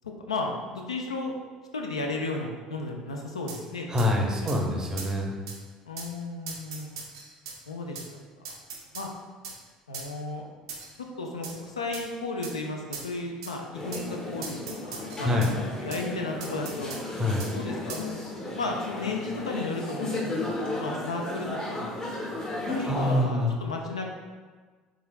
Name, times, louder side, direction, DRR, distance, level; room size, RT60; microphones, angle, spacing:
voice 1, 0.3-1.3 1.7-4.3 5.9-6.9 7.7-8.0 8.4-8.5 8.9-9.1 9.9-10.4 11.2-16.9 17.5-22.0 22.7-24.1, left 2 dB, 80° left, 1 dB, 0.3 m, -34 dB
sound 1, 3.5-3.6 4.0-4.1 4.5-4.6 5.0-5.1 5.5-5.6 6.0-6.1 6.5-7.6 8.0-8.1 8.5-9.1 9.4-9.6 9.9-10.1 10.7-11.0 11.4-11.6 11.9-12.1 12.4-12.6 12.9-13.1 13.4-13.5 13.9-14.1 14.4-15.5 15.9-16.0 16.4-17.0 17.4-17.5 17.9-18.1, right 5 dB, 70° right, 0.4 m, -39 dB
voice 2, 3.9-5.3 15.2-15.5 17.2-17.5 22.9-23.5, left 1 dB, 20° right, 1 dB, 0.6 m, -25 dB
sound 2, 13.7-23.2, left 2 dB, 25° left, 0.7 m, -34 dB
3.5 x 3.1 x 2.3 m, 1.4 s
figure-of-eight pair, 60°, 3 cm